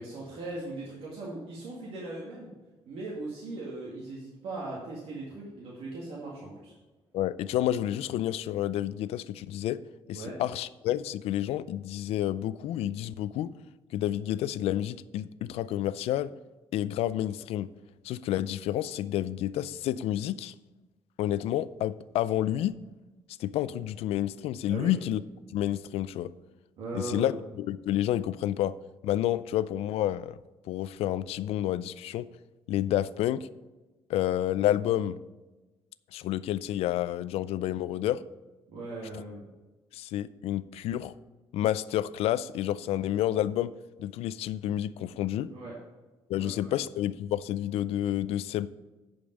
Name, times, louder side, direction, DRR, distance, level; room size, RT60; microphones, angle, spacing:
voice 1, 0.0-2.5 2.9-6.7 10.1-10.4 24.7-25.0 26.8-27.3 38.7-39.4 45.5-45.7 46.3-46.7, right 2 dB, 75° right, -5 dB, 2.1 m, -39 dB
voice 2, 7.1-9.8 10.1-13.5 13.9-16.3 16.7-17.7 18.0-20.5 21.2-22.8 23.4-25.2 25.5-26.3 26.9-28.8 29.0-30.4 30.7-32.3 32.7-33.5 34.1-35.2 36.1-38.2 39.1-39.2 39.9-41.1 41.5-43.7 44.0-45.5 46.3-48.7, left 12 dB, 90° left, 17 dB, 0.4 m, -29 dB
10.5 x 5.3 x 5.3 m, 1.1 s
cardioid pair, 140°, 10 cm